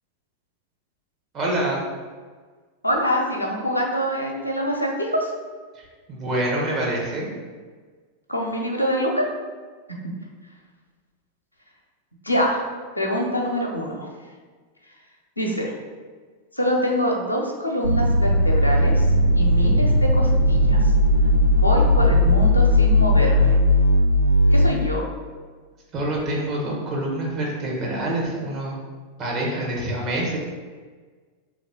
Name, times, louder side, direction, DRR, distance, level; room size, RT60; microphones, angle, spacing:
voice 1, 1.3-1.8 5.7-7.3 25.9-28.8 29.2-30.4, right 1 dB, 30° right, -3 dB, 1.3 m, -26 dB
voice 2, 2.8-5.3 8.3-9.3 12.2-12.6 13.0-14.1 15.4-15.7 16.5-19.1 19.3-20.8 21.5-23.6 24.5-25.1, equal, 85° left, -1 dB, 0.6 m, -25 dB
sound 1, 17.8-24.7, left 1 dB, 75° right, 0.4 m, -17 dB
3.5 x 2.9 x 4.2 m, 1.5 s
figure-of-eight pair, 90°, 0 cm